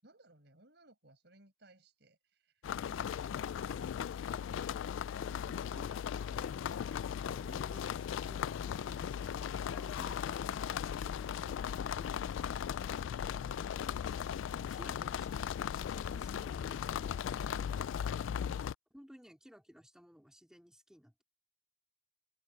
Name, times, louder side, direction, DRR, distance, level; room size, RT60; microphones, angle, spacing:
voice 1, 0.0-4.3 13.0-13.3 18.2-18.6, right 1 dB, 60° right, 6.2 m, -63 dB
sound 1, 2.6-18.7, left 8 dB, 75° left, 0.3 m, -37 dB
voice 2, 5.2-8.0 8.3-13.0 13.3-17.9 18.9-21.2, equal, 5° right, 3.4 m, -58 dB
head